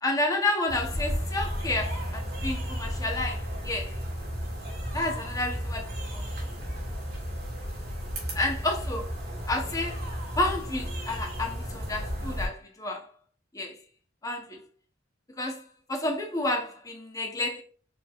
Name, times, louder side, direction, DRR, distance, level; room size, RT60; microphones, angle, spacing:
voice 1, 0.0-4.0 4.9-6.5 8.3-9.1 9.5-10.0 10.3-13.1 13.5-13.8 14.2-14.6 15.4-17.6, left 2 dB, 20° left, 0.9 m, -30 dB
sound 1, 0.7-12.5, equal, 55° right, 1.8 m, -33 dB
4.8 x 4.1 x 2.4 m
head